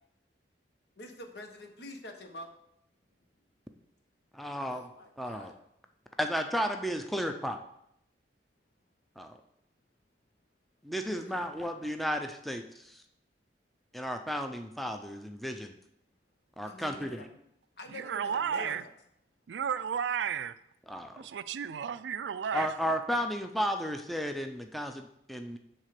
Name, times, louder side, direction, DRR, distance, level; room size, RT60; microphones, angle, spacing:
voice 1, 1.0-2.5 4.7-5.6 11.2-11.3 16.6-17.3 17.8-18.9, left 1 dB, 65° left, 5 dB, 1.0 m, -46 dB
voice 2, 4.3-4.9 5.2-5.5 6.2-7.6 9.2-9.4 10.8-13.0 13.9-15.7 16.6-17.2 20.9-21.2 22.5-25.6, equal, ahead, 5 dB, 0.5 m, -33 dB
voice 3, 17.9-18.8 19.5-20.5 21.2-22.7, right 7 dB, 90° right, 14 dB, 0.4 m, -33 dB
8.1 x 3.7 x 5.9 m, 0.75 s
head